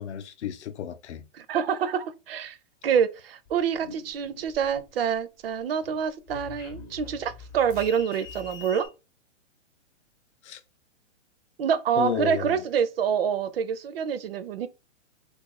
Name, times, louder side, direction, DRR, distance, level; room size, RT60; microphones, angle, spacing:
voice 1, 0.0-1.2 10.4-10.6 12.0-12.6, left 8 dB, 65° left, 0.6 m, -32 dB
voice 2, 1.3-2.6 2.8-8.9 11.6-14.7, right 7 dB, 50° right, 0.4 m, -26 dB
sound 1, 3.4-5.1 5.5-8.9, left 4 dB, 15° left, 0.5 m, -44 dB
2.5 x 2.4 x 3.9 m
hypercardioid pair, 165°, 37 cm